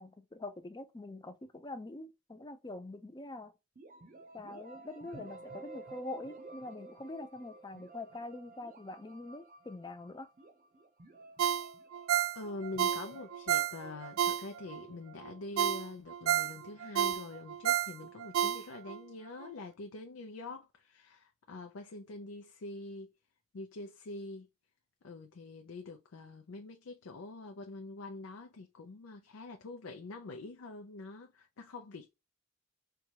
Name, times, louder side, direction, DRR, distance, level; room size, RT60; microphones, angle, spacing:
voice 1, 0.0-3.5 4.3-10.3, left 2 dB, 20° left, 0.5 m, -44 dB
sound 1, 3.7-15.5, right 3 dB, 40° right, 0.7 m, -53 dB
Ringtone, 11.4-14.8 15.2-15.3 15.6-19.0 19.4-19.5, right 10 dB, 75° right, 0.3 m, -31 dB
voice 2, 12.3-23.1 23.5-24.5 25.0-32.1, left 2 dB, 80° left, 0.5 m, -45 dB
4.5 x 2.3 x 2.8 m
head